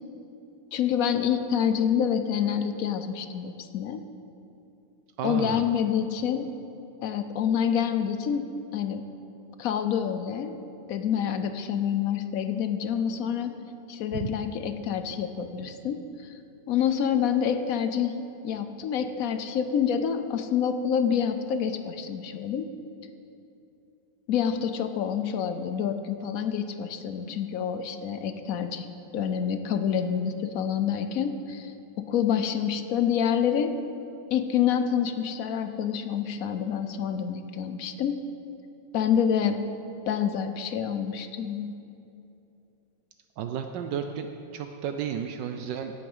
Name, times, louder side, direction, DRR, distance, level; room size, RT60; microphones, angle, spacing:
voice 1, 0.7-4.0 5.2-6.5 7.0-8.5 8.7-9.0 9.6-10.6 10.9-13.6 13.9-16.3 16.7-22.7 24.3-28.9 29.1-33.8 34.3-38.2 38.9-39.6 40.1-41.7, left 8 dB, 65° left, 9 dB, 0.9 m, -27 dB
voice 2, 5.2-5.6 14.1-14.3 43.4-44.3 44.5-45.9, right 8 dB, 75° right, 6 dB, 1.2 m, -32 dB
16.0 x 7.8 x 5.5 m, 2.8 s
omnidirectional pair, 2.0 m